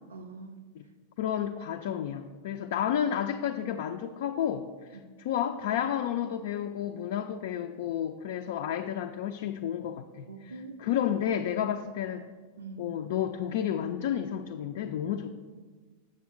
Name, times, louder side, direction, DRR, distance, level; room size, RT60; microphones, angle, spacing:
voice 1, 0.1-0.6 10.3-10.8 12.6-12.9, right 3 dB, 75° right, 3 dB, 0.5 m, -43 dB
voice 2, 1.2-12.3 12.8-15.3, left 9 dB, 55° left, 5 dB, 0.3 m, -31 dB
7.5 x 7.0 x 3.6 m, 1.4 s
figure-of-eight pair, 90°, 0 cm